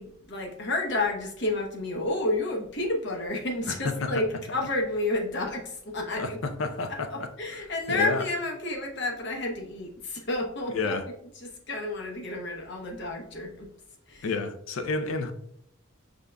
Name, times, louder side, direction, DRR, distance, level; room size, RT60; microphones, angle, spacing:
voice 1, 0.0-6.4 6.9-11.0 11.4-13.7 14.1-14.3, left 2 dB, 55° left, 0.9 m, -30 dB
voice 2, 3.7-4.1 6.1-7.3 7.9-8.2 10.7-11.1 14.2-15.3, left 3 dB, 70° left, 0.5 m, -30 dB
5.1 x 3.6 x 2.2 m
head